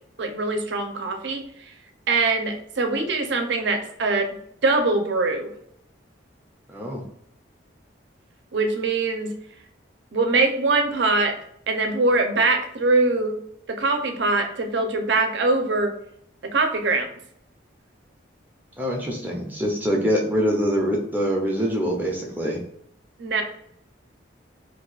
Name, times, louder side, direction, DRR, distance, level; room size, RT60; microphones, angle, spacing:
voice 1, 0.2-1.4 2.1-4.4 4.6-5.5 8.5-9.3 10.1-11.3 11.7-13.4 13.7-16.0 16.4-17.1 23.2-23.4, right 3 dB, 70° right, 5 dB, 0.6 m, -22 dB
voice 2, 6.7-7.0 18.8-22.6, equal, 10° right, -1 dB, 0.5 m, -24 dB
2.7 x 2.3 x 3.8 m, 0.70 s
head